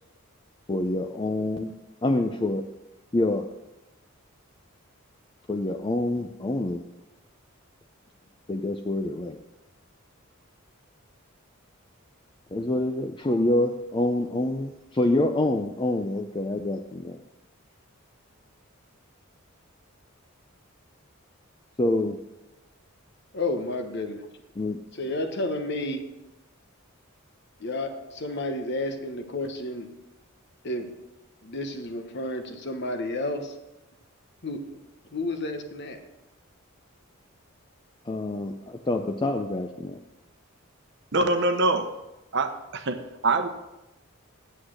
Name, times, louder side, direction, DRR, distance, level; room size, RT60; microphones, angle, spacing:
voice 1, 0.7-1.7 2.0-2.6 3.1-3.5 5.5-6.8 8.5-9.4 12.5-17.2 21.8-22.2 24.6-24.8 38.1-40.0, left 1 dB, 20° left, 5 dB, 0.4 m, -26 dB
voice 2, 23.3-24.3 24.9-26.0 27.6-29.9 30.6-30.9 31.4-33.5 34.4-34.8 35.1-36.0, left 2 dB, 50° left, 7 dB, 1.1 m, -31 dB
voice 3, 41.1-41.9 42.3-43.5, right 2 dB, 55° right, 8 dB, 0.8 m, -24 dB
8.5 x 8.0 x 6.4 m, 1.0 s
head